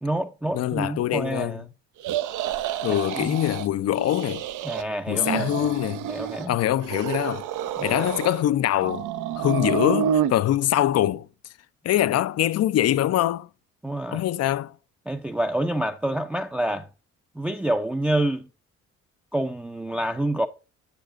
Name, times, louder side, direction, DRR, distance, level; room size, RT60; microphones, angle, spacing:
voice 1, 0.0-1.6 2.9-3.4 4.6-5.7 6.1-6.6 7.8-8.0 13.8-14.2 15.1-16.9 17.4-18.5 19.3-20.5, right 1 dB, 5° right, 0.4 m, -27 dB
voice 2, 0.5-1.6 2.8-4.4 5.1-6.1 6.5-7.5 7.8-9.1 9.4-11.3 11.8-13.5 14.1-14.7, left 12 dB, 55° left, 0.4 m, -23 dB
sound 1, 2.0-3.7 4.0-4.8 5.1-6.5 6.8-8.4 8.8-10.3, right 10 dB, 80° right, 0.6 m, -29 dB
7.1 x 6.8 x 2.5 m
cardioid pair, 90°, 30 cm